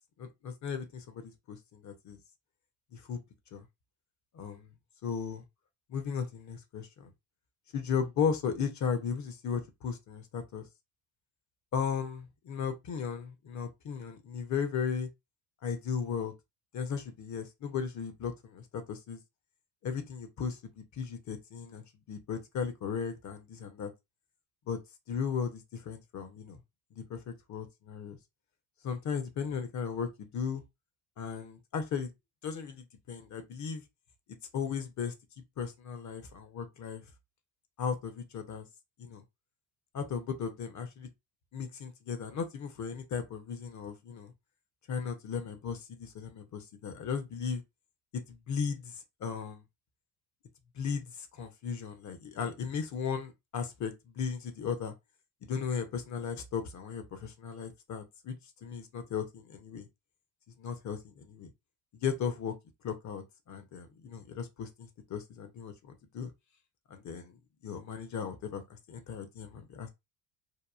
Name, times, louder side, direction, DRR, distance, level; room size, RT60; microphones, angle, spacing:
voice 1, 0.2-2.2 2.9-3.2 3.5-3.6 4.3-4.7 5.0-5.4 5.9-7.1 7.7-10.7 11.7-15.1 15.6-16.3 16.7-19.2 19.8-20.6 20.9-23.9 24.7-24.8 25.1-26.6 27.1-28.2 28.8-30.6 31.2-32.1 32.4-33.8 34.5-35.1 35.6-37.0 37.8-38.7 39.0-39.2 39.9-41.1 41.5-44.3 44.9-47.6 48.3-48.9 49.2-49.6 50.8-54.9 55.4-59.9 60.6-61.5 62.0-62.5 62.8-66.3 66.9-67.4 67.6-69.9, left 6 dB, 35° left, 0.7 m, -36 dB
2.9 x 2.3 x 2.3 m
supercardioid pair, 105°, 48 cm